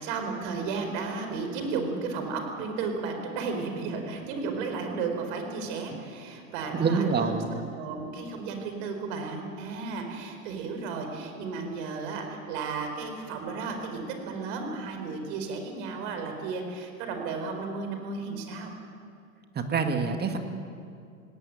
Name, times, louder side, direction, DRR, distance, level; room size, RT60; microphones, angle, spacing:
voice 1, 0.0-18.7, right 4 dB, 55° right, 5 dB, 4.6 m, -34 dB
voice 2, 6.7-7.5 19.6-20.4, right 5 dB, 25° right, 6 dB, 1.9 m, -26 dB
19.0 x 17.5 x 9.1 m, 2.4 s
hypercardioid pair, 100°, 41 cm